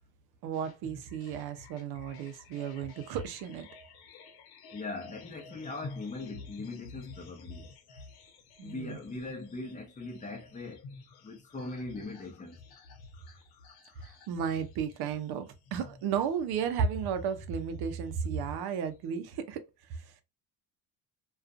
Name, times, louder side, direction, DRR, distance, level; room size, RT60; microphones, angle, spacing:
voice 1, 0.4-3.7 8.6-9.0 14.0-19.6 19.9-20.1, right 7 dB, 75° right, 0.6 m, -33 dB
sound 1, 0.5-19.3, left 3 dB, 80° left, 0.8 m, -52 dB
voice 2, 4.7-8.0 8.6-10.8 11.2-12.6 13.3-13.4, left 3 dB, 20° left, 0.7 m, -40 dB
2.5 x 2.3 x 2.3 m
cardioid pair, 125°, 38 cm